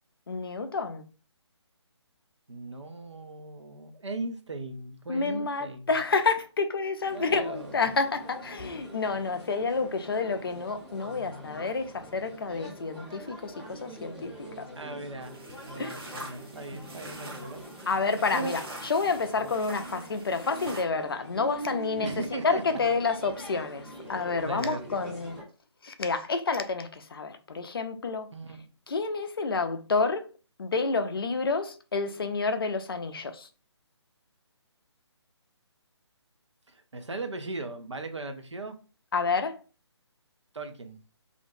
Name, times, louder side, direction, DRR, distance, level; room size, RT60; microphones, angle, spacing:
voice 1, 0.3-1.0 5.1-14.7 15.8-16.1 17.9-22.1 22.4-25.4 25.8-28.3 28.9-30.3 30.6-33.5 39.1-39.6, left 4 dB, 55° left, 0.4 m, -29 dB
voice 2, 2.5-5.9 7.1-7.8 14.8-15.4 15.6-17.9 18.3-18.5 22.0-22.6 24.4-24.8 28.3-28.6 36.7-38.8 40.5-41.0, right 3 dB, 75° right, 0.5 m, -38 dB
sound 1, 7.0-25.4, right 1 dB, ahead, 0.5 m, -44 dB
sound 2, 15.2-20.8, right 1 dB, 55° right, 0.9 m, -45 dB
2.5 x 2.1 x 2.6 m
figure-of-eight pair, 145°, 15 cm